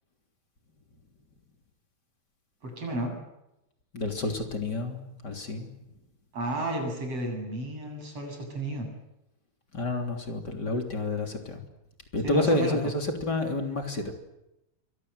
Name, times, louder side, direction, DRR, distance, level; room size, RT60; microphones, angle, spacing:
voice 1, 2.6-3.2 6.3-8.9 12.2-12.8, right 1 dB, 35° right, 3 dB, 8.7 m, -32 dB
voice 2, 3.9-5.7 9.7-11.6 12.1-14.1, left 2 dB, 25° left, 4 dB, 3.2 m, -29 dB
28.0 x 24.5 x 8.1 m, 0.92 s
omnidirectional pair, 4.9 m